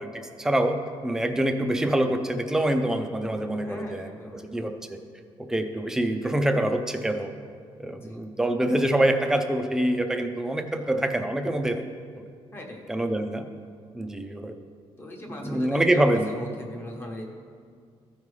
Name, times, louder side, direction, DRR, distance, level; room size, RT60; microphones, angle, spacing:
voice 1, 0.0-4.1 4.5-5.0 5.5-7.3 7.8-11.8 12.9-13.4 13.9-14.5 15.4-16.3, right 1 dB, 5° right, 6 dB, 0.5 m, -25 dB
voice 2, 3.6-4.7 7.8-8.2 10.8-11.1 12.5-12.8 15.0-17.2, left 1 dB, 20° left, 0 dB, 1.1 m, -40 dB
14.0 x 5.3 x 3.2 m, 2.1 s
cardioid pair, 170°, 10 cm